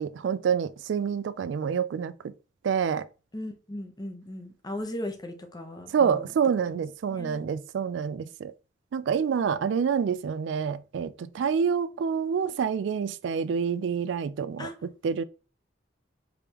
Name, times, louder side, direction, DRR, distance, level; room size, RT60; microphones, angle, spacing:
voice 1, 0.0-2.1 2.6-3.1 5.9-8.5 8.9-14.7 15.0-15.2, right 7 dB, 80° right, 0.3 m, -27 dB
voice 2, 3.3-6.3 6.7-6.8 7.1-7.5 14.6-14.7, left 1 dB, 20° left, 0.8 m, -37 dB
5.0 x 3.4 x 3.0 m
head